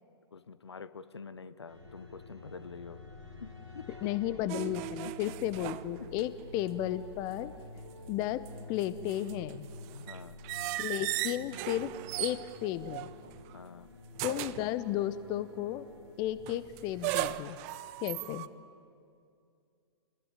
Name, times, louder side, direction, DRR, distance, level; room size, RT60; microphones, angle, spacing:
voice 1, 0.3-3.0 3.4-4.1 5.0-5.1 6.0-6.1 9.9-10.4 13.5-13.9, left 5 dB, 70° left, 14 dB, 1.1 m, -46 dB
sound 1, 1.7-17.3, left 2 dB, 90° right, 4.1 m, -49 dB
voice 2, 4.0-7.5 8.1-9.7 10.8-11.9 12.2-13.1 14.2-15.9 16.2-17.6 18.0-18.5, left 12 dB, 30° left, 15 dB, 0.7 m, -34 dB
sound 2, 4.5-6.4 6.7-6.8 8.2-13.6 14.1-14.7 16.5-18.5, right 17 dB, 30° right, 0.7 m, -38 dB
28.0 x 21.0 x 8.9 m, 2.4 s
figure-of-eight pair, 110°, 15 cm